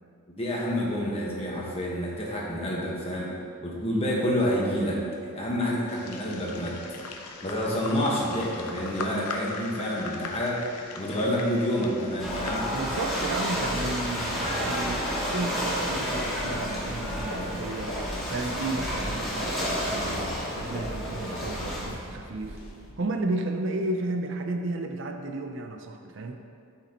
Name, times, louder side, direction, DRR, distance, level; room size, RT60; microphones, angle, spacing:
voice 1, 0.3-3.3 3.6-7.0 7.4-10.6 11.0-12.6, equal, 25° left, -4 dB, 1.3 m, -28 dB
sound 1, 5.9-13.2, left 3 dB, 85° left, 0.8 m, -40 dB
Ocean / Boat Water vehicle, 12.2-21.8, equal, ahead, 1.8 m, -30 dB
voice 2, 12.7-18.0 18.3-22.6 23.0-26.4, right 2 dB, 55° right, 4 dB, 0.5 m, -33 dB
sound 2, 15.9-22.9, left 1 dB, 70° left, 1.5 m, -40 dB
12.0 x 5.8 x 2.9 m, 2.4 s
head